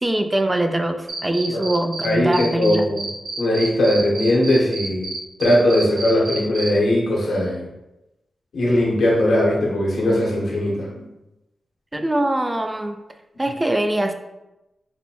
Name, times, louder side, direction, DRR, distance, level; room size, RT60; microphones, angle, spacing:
voice 1, 0.0-2.9 11.9-13.0 13.4-14.1, right 1 dB, 20° right, 7 dB, 0.4 m, -22 dB
Cricket, 1.1-2.1 2.3-6.7, right 3 dB, 80° right, 0.5 m, -29 dB
voice 2, 2.0-3.1 3.4-5.1 5.4-7.7 8.5-11.1, left 1 dB, 80° left, -3 dB, 1.0 m, -19 dB
4.1 x 2.2 x 2.9 m, 0.95 s
cardioid pair, 60°, 0 cm